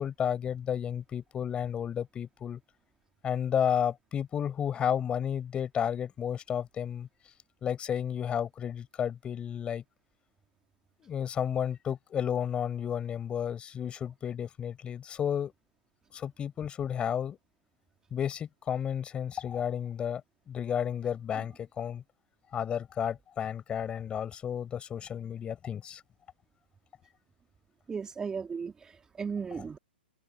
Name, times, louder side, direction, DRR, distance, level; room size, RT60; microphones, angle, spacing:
voice 1, 0.0-2.6 3.2-7.1 7.6-9.8 11.0-15.5 16.1-17.4 18.1-20.2 20.5-22.0 22.5-26.0, left 8 dB, 20° left, 6.3 m, -32 dB
voice 2, 27.9-29.8, right 5 dB, 10° right, 3.4 m, -36 dB
open air
hypercardioid pair, 125°, 6 cm